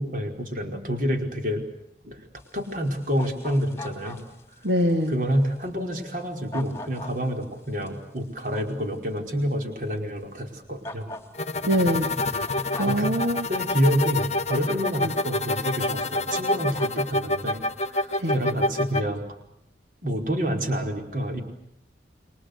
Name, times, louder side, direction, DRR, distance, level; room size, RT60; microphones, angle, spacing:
voice 1, 0.0-1.6 2.0-2.2 2.5-4.2 5.1-11.1 12.5-12.6 12.8-13.1 13.5-19.2 20.0-21.4, equal, 50° right, 3 dB, 4.9 m, -28 dB
sound 1, 2.4-9.5 10.0-10.1 10.8-13.1 14.2-14.4 15.0-15.1 15.5-15.7 15.9-16.2 16.4-17.2, left 2 dB, 15° left, 3.2 m, -42 dB
voice 2, 4.6-5.1 11.6-12.4 12.8-13.5 15.0-15.1 18.2-18.4, equal, 80° right, 5 dB, 2.3 m, -24 dB
sound 2, 11.3-19.0, left 2 dB, 40° left, 1.1 m, -27 dB
30.0 x 23.0 x 6.8 m, 0.81 s
head